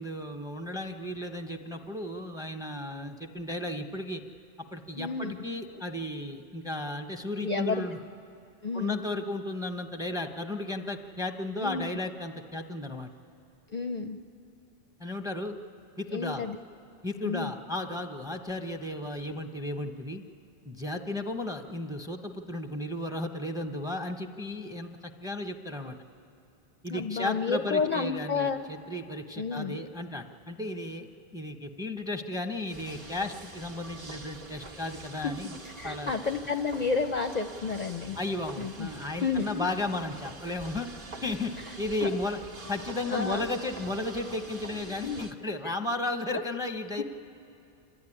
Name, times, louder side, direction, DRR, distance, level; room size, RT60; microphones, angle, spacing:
voice 1, 0.0-4.2 4.7-8.0 8.7-13.1 15.0-15.6 16.0-16.4 17.0-20.2 20.6-26.0 26.8-35.6 35.8-36.1 38.2-40.9 41.2-42.4 42.7-47.0, left 2 dB, 5° right, 6 dB, 0.8 m, -34 dB
voice 2, 5.0-5.4 7.4-7.9 8.6-9.0 11.6-11.9 13.7-14.2 16.1-16.6 17.2-17.5 26.9-28.6 29.4-29.8 35.2-35.3 35.6-38.2 38.6-38.9 39.2-39.7 42.0-42.1 43.1-43.4 45.0-45.2 46.3-46.4 47.0-47.1, left 4 dB, 50° left, 6 dB, 0.6 m, -31 dB
sound 1, 32.7-45.3, right 2 dB, 55° right, 1.4 m, -45 dB
27.0 x 13.5 x 9.9 m, 2.7 s
omnidirectional pair, 1.1 m